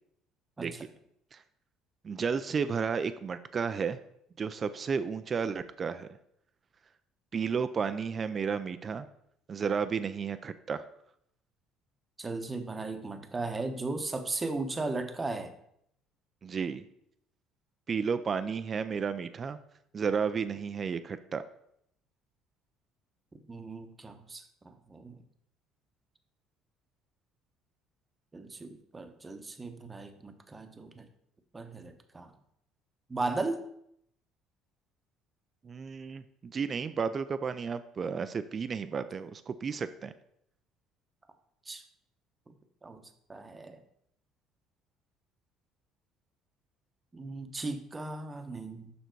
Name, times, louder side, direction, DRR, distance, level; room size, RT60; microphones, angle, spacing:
voice 1, 2.0-4.0 4.4-6.1 7.3-9.1 9.5-10.8 16.4-16.8 17.9-19.6 19.9-21.4 35.6-40.1, right 6 dB, 35° right, 11 dB, 0.4 m, -32 dB
voice 2, 12.2-15.5 23.5-25.2 28.3-31.1 31.5-32.3 33.1-33.6 41.7-41.8 42.8-43.0 43.3-43.8 47.1-48.9, right 3 dB, 20° right, 7 dB, 0.9 m, -36 dB
6.8 x 5.5 x 4.6 m, 0.73 s
supercardioid pair, 95°, 0 cm